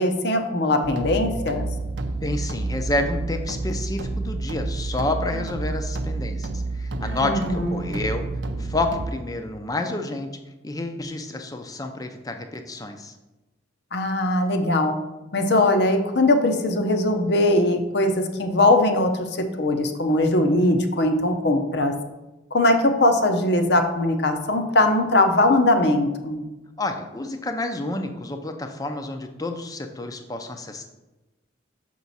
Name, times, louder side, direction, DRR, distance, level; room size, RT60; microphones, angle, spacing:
voice 1, 0.0-1.7 7.2-7.8 13.9-14.9 15.3-19.3 19.6-21.9 22.5-26.4, left 1 dB, 60° left, 6 dB, 0.7 m, -20 dB
sound 1, 0.8-9.1, right 2 dB, 70° right, 0.5 m, -29 dB
voice 2, 2.2-8.2 8.6-10.3 10.6-13.1 26.8-31.0, left 2 dB, 20° left, 6 dB, 0.5 m, -29 dB
6.8 x 4.7 x 4.1 m, 1.1 s
head